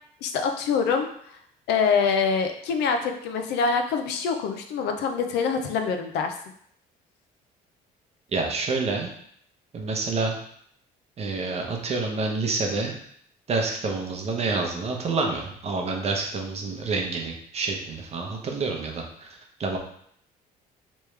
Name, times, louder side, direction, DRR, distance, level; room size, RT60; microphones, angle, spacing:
voice 1, 0.2-1.1 1.7-6.3, left 5 dB, 80° left, 5 dB, 0.6 m, -25 dB
voice 2, 8.3-9.1 9.7-10.4 11.2-13.0 13.5-19.8, right 3 dB, 40° right, 2 dB, 0.8 m, -28 dB
3.4 x 3.1 x 3.2 m, 0.66 s
cardioid pair, 110°, 17 cm